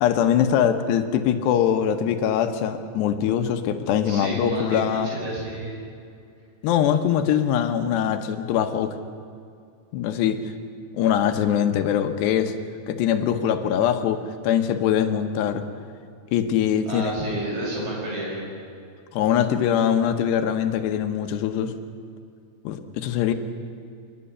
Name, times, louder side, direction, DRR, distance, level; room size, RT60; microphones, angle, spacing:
voice 1, 0.0-5.1 6.6-9.0 9.9-10.5 10.9-12.6 12.9-15.7 16.3-17.2 19.1-21.7 22.6-23.3, left 9 dB, 80° left, 8 dB, 3.2 m, -22 dB
voice 2, 4.1-5.8 16.9-18.4, right 2 dB, 55° right, -4 dB, 8.6 m, -30 dB
28.0 x 10.5 x 10.0 m, 2.4 s
omnidirectional pair, 4.8 m